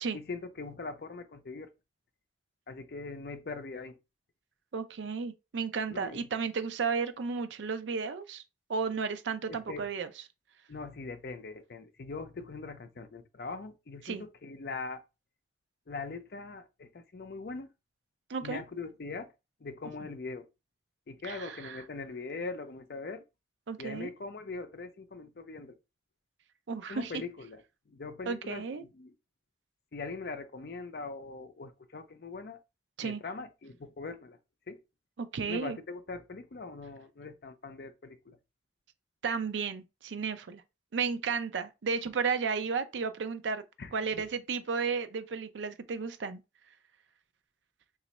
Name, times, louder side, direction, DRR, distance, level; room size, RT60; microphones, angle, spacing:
voice 1, 0.1-1.7 2.7-4.0 5.9-6.3 9.5-9.9 10.7-15.0 15.9-17.7 18.4-19.3 19.6-20.5 21.1-23.2 23.8-25.8 26.9-27.6 27.9-29.1 29.9-32.6 33.0-34.4 34.7-34.8 35.5-38.4 43.8-44.3, left 3 dB, 60° left, 0.5 m, -41 dB
voice 2, 4.7-8.4 8.7-10.1 14.0-14.2 18.3-18.6 21.2-21.8 23.7-24.1 26.7-27.2 28.3-28.8 33.0-33.2 35.2-35.8 39.2-40.6 40.9-43.6 43.9-46.4, right 5 dB, 85° right, 0.5 m, -33 dB
3.0 x 2.4 x 4.1 m
head